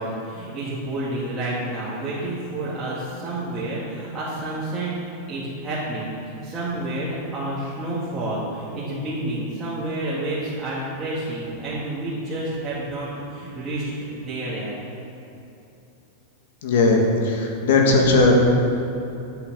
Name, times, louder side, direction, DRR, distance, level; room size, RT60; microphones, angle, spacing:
voice 1, 0.0-4.9 5.3-14.8, right 1 dB, 20° right, -10 dB, 2.0 m, -29 dB
voice 2, 16.6-18.5, left 2 dB, 75° left, 1 dB, 1.7 m, -18 dB
8.2 x 7.9 x 6.2 m, 2.9 s
supercardioid pair, 150°, 0 cm